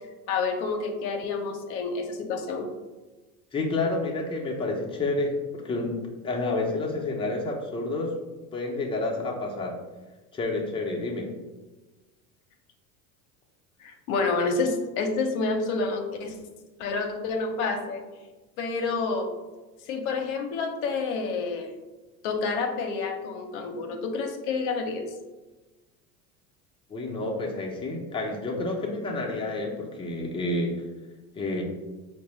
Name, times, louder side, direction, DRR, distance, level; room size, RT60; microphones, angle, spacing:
voice 1, 0.3-2.7 13.8-16.4 16.8-18.0 18.6-19.3 19.9-21.7 22.2-25.0, left 4 dB, 70° left, 4 dB, 0.7 m, -28 dB
voice 2, 3.5-5.9 6.2-8.1 8.5-9.8 10.3-11.3 26.9-30.7 31.3-31.6, left 2 dB, 10° left, -1 dB, 0.6 m, -29 dB
4.5 x 2.1 x 3.0 m, 1.2 s
hypercardioid pair, 85°, 45 cm